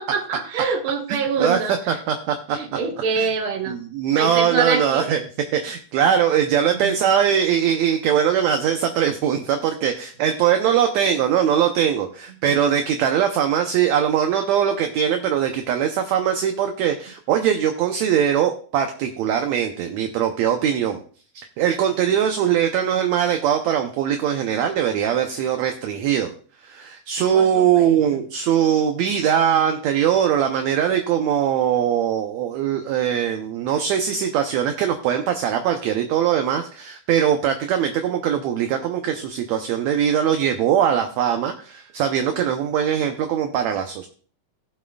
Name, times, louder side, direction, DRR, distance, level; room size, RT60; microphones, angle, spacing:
voice 1, 0.0-2.0 2.5-3.7 4.2-5.2 6.8-6.9 27.3-28.0, right 5 dB, 50° right, 2 dB, 1.8 m, -25 dB
voice 2, 1.9-2.6 3.2-3.3 3.7-5.2 5.5-21.0 21.3-26.3 26.6-44.1, right 9 dB, 75° right, 5 dB, 1.7 m, -21 dB
19.0 x 7.3 x 2.3 m, 0.42 s
omnidirectional pair, 3.8 m